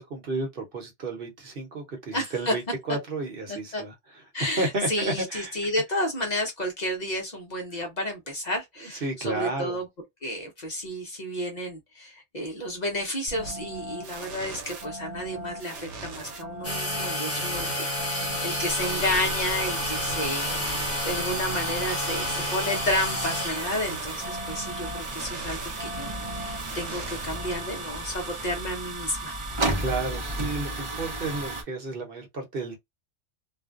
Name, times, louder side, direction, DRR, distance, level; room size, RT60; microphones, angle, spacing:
voice 1, 0.0-3.9 4.6-5.5 9.0-9.8 29.8-32.8, right 2 dB, 55° right, 1.0 m, -32 dB
voice 2, 2.1-2.5 3.5-3.8 4.3-9.9 10.2-29.3, left 1 dB, 45° left, 0.7 m, -31 dB
sound 1, 13.3-27.9, right 2 dB, 85° right, 1.1 m, -39 dB
sound 2, 16.6-28.6, left 1 dB, 15° left, 1.2 m, -32 dB
sound 3, 18.7-31.6, right 2 dB, 35° right, 0.6 m, -34 dB
2.5 x 2.1 x 2.4 m
omnidirectional pair, 1.1 m